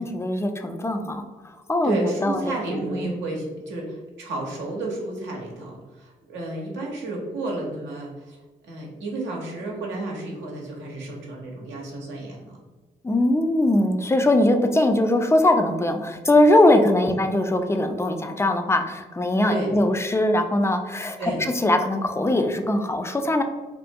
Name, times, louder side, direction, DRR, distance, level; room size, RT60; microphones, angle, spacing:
voice 1, 0.0-2.6 2.9-3.1 13.0-23.4, left 1 dB, 15° left, 6 dB, 0.3 m, -21 dB
voice 2, 1.8-8.4 8.6-12.6 17.0-17.2 19.5-19.7 21.2-21.4, right 2 dB, 75° right, -1 dB, 0.7 m, -31 dB
2.4 x 2.1 x 2.6 m, 1.2 s
hypercardioid pair, 45°, 19 cm